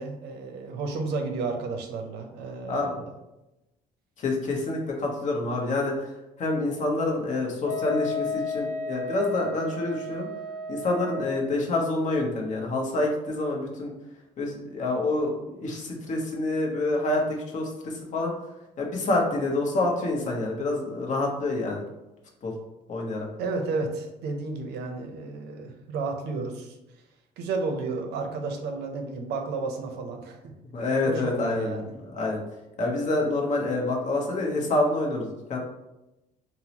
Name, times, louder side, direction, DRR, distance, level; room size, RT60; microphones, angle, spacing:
voice 1, 0.0-3.0 23.4-26.8 27.4-30.5 31.0-31.9, right 3 dB, 80° right, 4 dB, 0.6 m, -32 dB
voice 2, 4.2-5.9 6.4-10.3 10.7-13.9 14.4-18.3 18.8-21.8 22.4-22.5 22.9-23.3 30.7-32.4 32.8-35.6, left 2 dB, 45° left, -1 dB, 0.9 m, -27 dB
Wind instrument woodwind instrument, 7.6-11.3, left 3 dB, 60° left, 1.2 m, -33 dB
3.7 x 2.1 x 2.9 m, 0.94 s
cardioid pair, 110°, 17 cm